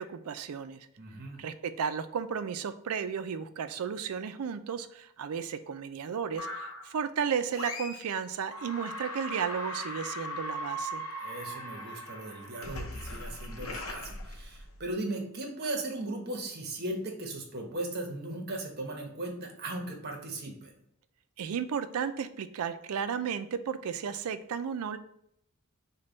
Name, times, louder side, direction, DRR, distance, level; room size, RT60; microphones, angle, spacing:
voice 1, 0.0-0.9 1.4-11.0 21.4-25.0, right 7 dB, 75° right, 11 dB, 0.4 m, -34 dB
voice 2, 1.0-1.4 11.2-20.7, right 2 dB, 45° right, 3 dB, 0.9 m, -37 dB
sound 1, 6.4-6.9 7.5-8.2 8.5-14.9, equal, 65° left, 0.6 m, -39 dB
5.3 x 2.2 x 3.9 m, 0.72 s
head